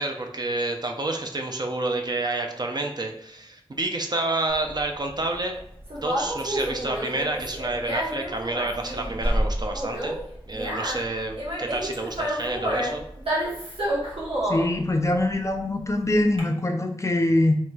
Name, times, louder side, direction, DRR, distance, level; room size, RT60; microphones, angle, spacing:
voice 1, 0.0-5.6 6.0-10.2 10.4-13.0, right 2 dB, 45° right, 3 dB, 0.4 m, -29 dB
Conversation, 4.5-16.4, right 1 dB, 75° right, 0.9 m, -29 dB
voice 2, 14.5-17.6, left 1 dB, 30° left, 5 dB, 0.3 m, -23 dB
3.0 x 2.9 x 2.2 m, 0.72 s
wide cardioid pair, 50°, 10 cm